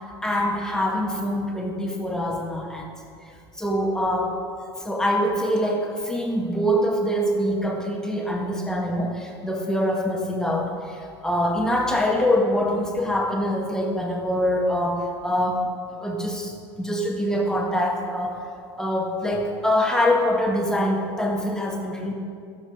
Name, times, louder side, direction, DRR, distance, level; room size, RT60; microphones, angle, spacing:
voice 1, 0.2-2.9 3.6-4.4 4.8-15.7 16.0-18.4 18.8-22.1, equal, 5° left, 1 dB, 1.6 m, -24 dB
12.0 x 7.7 x 4.7 m, 2.4 s
figure-of-eight pair, 70°, 15 cm